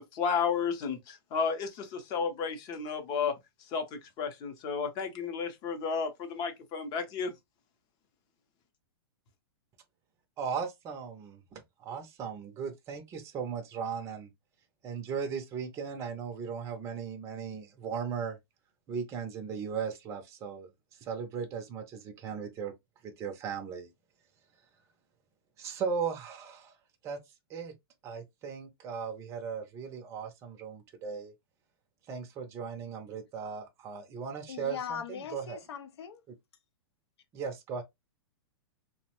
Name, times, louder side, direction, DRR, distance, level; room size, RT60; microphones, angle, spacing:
voice 1, 0.0-3.3 3.7-7.3, left 6 dB, 30° left, 0.6 m, -32 dB
voice 2, 10.4-14.3 14.8-18.4 18.9-20.7 21.0-22.7 23.0-23.9 25.6-26.7 27.0-27.2 27.5-27.7 28.0-31.3 32.1-35.6 37.3-37.8, right 6 dB, 20° right, 0.5 m, -37 dB
voice 3, 34.5-36.2, left 7 dB, 80° left, 0.6 m, -40 dB
2.9 x 2.1 x 2.8 m
hypercardioid pair, 145°, 14 cm